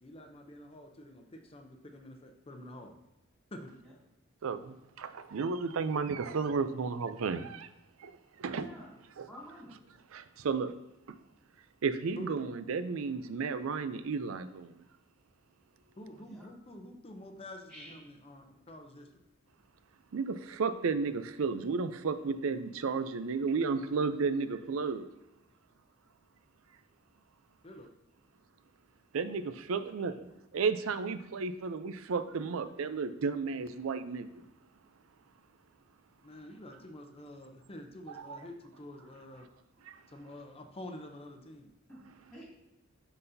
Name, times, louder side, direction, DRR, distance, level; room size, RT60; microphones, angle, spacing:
voice 1, 0.0-3.0 3.5-3.7 12.2-12.3 16.0-19.1 27.6-27.9 36.2-39.5 40.1-41.7, left 1 dB, 30° left, 5 dB, 0.6 m, -48 dB
voice 2, 4.4-7.7 8.0-8.7 9.2-9.3 10.1-10.7 11.1-11.2 11.8-14.8 20.1-25.1 29.1-30.3 30.5-34.5 38.1-38.4 39.8-40.0, right 5 dB, 85° right, 12 dB, 0.5 m, -33 dB
voice 3, 8.5-8.9 9.2-9.8 16.2-16.5 17.7-18.0 22.8-23.1 29.4-29.5 30.0-30.1 41.9-42.4, equal, ahead, -7 dB, 2.4 m, -51 dB
11.0 x 4.0 x 2.7 m, 0.92 s
head